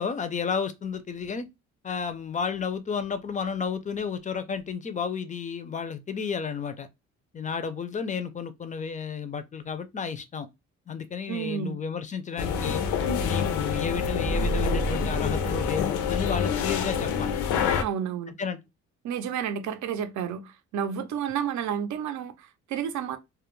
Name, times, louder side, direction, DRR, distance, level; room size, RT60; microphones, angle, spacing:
voice 1, 0.0-1.5 1.8-6.9 7.3-10.5 10.9-12.8 13.2-17.3 18.4-18.6, left 6 dB, 25° left, 0.4 m, -32 dB
voice 2, 11.3-11.8 17.8-18.3 19.0-23.2, right 8 dB, 70° right, 0.5 m, -31 dB
sound 1, 12.4-17.8, left 6 dB, 85° left, 0.5 m, -27 dB
sound 2, 14.3-16.1, right 2 dB, 20° right, 0.6 m, -31 dB
2.3 x 2.0 x 3.0 m
cardioid pair, 90°, 30 cm